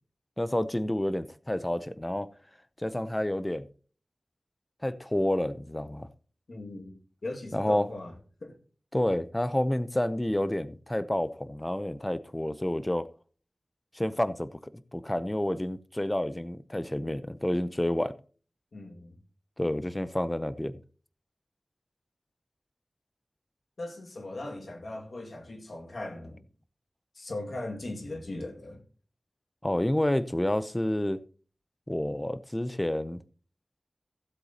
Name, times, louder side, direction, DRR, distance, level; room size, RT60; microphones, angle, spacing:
voice 1, 0.4-2.3 2.8-3.7 4.8-6.1 7.5-7.9 8.9-13.1 13.9-14.6 14.9-18.1 19.6-20.8 29.6-31.2 31.9-33.2, left 1 dB, 15° left, 0.6 m, -29 dB
voice 2, 6.5-8.1 8.4-8.6 18.7-19.2 23.8-26.4 27.1-28.8, left 2 dB, 75° left, 2.0 m, -39 dB
15.5 x 7.9 x 2.8 m
wide cardioid pair, 70°, 0 cm